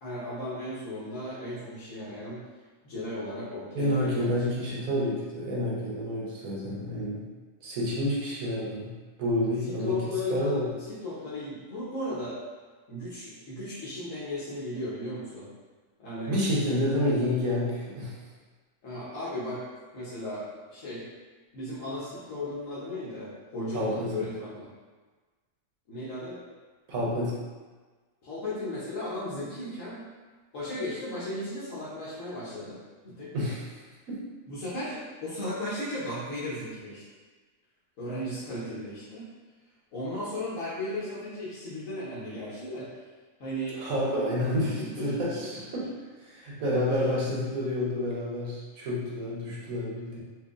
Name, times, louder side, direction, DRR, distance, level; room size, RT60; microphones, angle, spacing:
voice 1, 0.0-2.4 2.8-4.7 9.6-10.6 10.9-12.4 12.9-15.5 16.0-16.4 18.8-19.6 19.9-21.1 21.5-24.7 25.9-26.4 28.2-30.0 30.5-32.8 33.0-33.3 34.5-37.0 38.0-39.3 39.9-42.9 43.4-43.8 44.6-45.1, left 1 dB, 70° left, -10 dB, 1.3 m, -35 dB
voice 2, 3.7-7.2 7.6-8.9 9.2-10.7 16.3-18.2 23.7-24.2 26.9-27.4 33.3-34.2 43.7-45.8 46.2-50.2, left 1 dB, 80° right, -5 dB, 1.3 m, -29 dB
4.5 x 2.6 x 2.4 m, 1.3 s
omnidirectional pair, 1.4 m